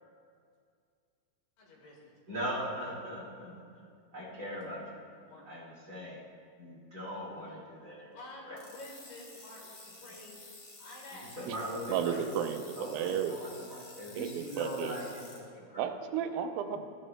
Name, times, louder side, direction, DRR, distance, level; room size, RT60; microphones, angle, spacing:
voice 1, 1.6-2.2 5.2-5.5 8.1-10.5 10.8-11.5, left 1 dB, 70° left, -1 dB, 3.1 m, -50 dB
voice 2, 2.3-3.8 4.1-5.0 5.4-6.2 6.6-8.1 8.5-8.6 11.4-12.3 12.8-15.9, equal, 25° right, -7 dB, 2.2 m, -40 dB
sound 1, 8.6-15.4, left 2 dB, 40° left, 1.9 m, -51 dB
voice 3, 11.9-13.3 14.2-15.0 15.8-16.8, right 9 dB, 85° right, 7 dB, 2.4 m, -33 dB
14.0 x 11.5 x 2.2 m, 2.2 s
omnidirectional pair, 4.1 m